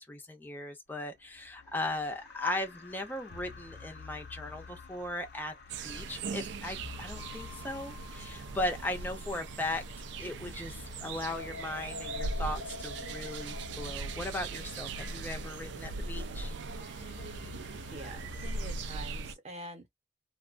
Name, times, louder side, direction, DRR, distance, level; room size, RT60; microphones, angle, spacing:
voice 1, 0.0-5.5 5.8-9.8 10.2-16.5, left 1 dB, 10° left, 0.6 m, -37 dB
sound 1, 1.2-18.7, left 4 dB, 60° left, 0.7 m, -48 dB
sound 2, 5.7-19.3, right 3 dB, 65° right, 0.3 m, -40 dB
voice 2, 17.9-19.9, right 1 dB, 35° right, 0.8 m, -45 dB
2.4 x 2.2 x 2.4 m
head